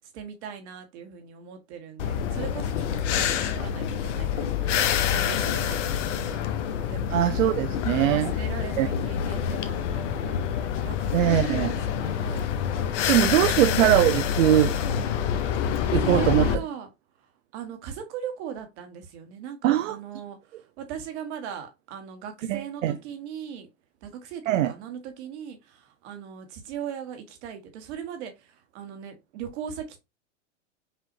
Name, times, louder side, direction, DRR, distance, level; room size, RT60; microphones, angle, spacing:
voice 1, 0.1-6.5 6.9-7.3 8.1-10.4 10.8-12.5 13.4-13.6 16.0-16.9 17.5-23.7 24.0-30.0, right 8 dB, 60° right, 1.4 m, -38 dB
sound 1, 2.0-16.6, left 8 dB, 65° left, 0.8 m, -27 dB
voice 2, 7.1-8.3 8.8-8.9 11.1-11.7 13.1-14.7 15.9-16.5 19.6-20.0 22.5-23.0 24.5-24.7, right 13 dB, 75° right, 0.5 m, -21 dB
5.6 x 2.7 x 2.7 m
hypercardioid pair, 115°, 39 cm